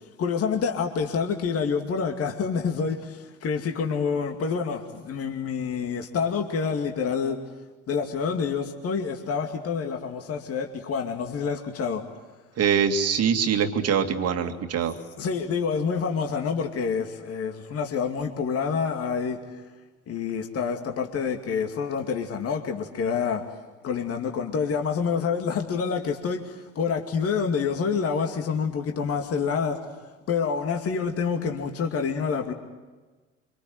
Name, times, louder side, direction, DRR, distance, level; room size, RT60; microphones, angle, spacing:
voice 1, 0.2-7.4 7.9-12.0 15.2-19.4 20.1-23.4 23.8-29.8 30.3-32.5, left 6 dB, 40° left, 4 dB, 2.5 m, -27 dB
voice 2, 12.6-14.9, right 7 dB, 40° right, 6 dB, 2.4 m, -23 dB
26.5 x 25.5 x 7.9 m, 1.3 s
figure-of-eight pair, 65°, 38 cm